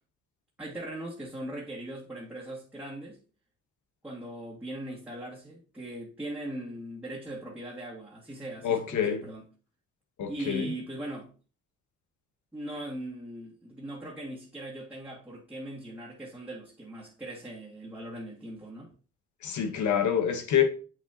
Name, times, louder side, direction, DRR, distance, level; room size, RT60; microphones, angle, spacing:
voice 1, 0.6-3.2 4.0-9.4 10.3-11.3 12.5-18.9, right 1 dB, 5° right, 2.2 m, -40 dB
voice 2, 8.6-9.2 10.2-10.7 19.4-20.7, left 8 dB, 75° left, 1.3 m, -26 dB
7.9 x 6.3 x 2.9 m
cardioid pair, 90°, 30 cm